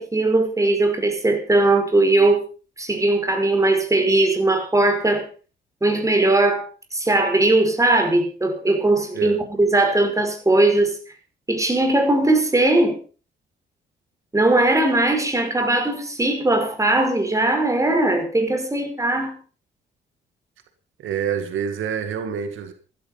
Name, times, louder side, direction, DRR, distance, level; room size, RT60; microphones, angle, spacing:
voice 1, 0.0-2.4 2.8-5.2 5.8-6.6 6.9-11.0 11.5-13.0 14.3-19.4, right 2 dB, 15° right, 5.5 m, -19 dB
voice 2, 21.0-22.7, right 7 dB, 80° right, 2.1 m, -27 dB
15.0 x 12.5 x 5.7 m
cardioid pair, 90°, 20 cm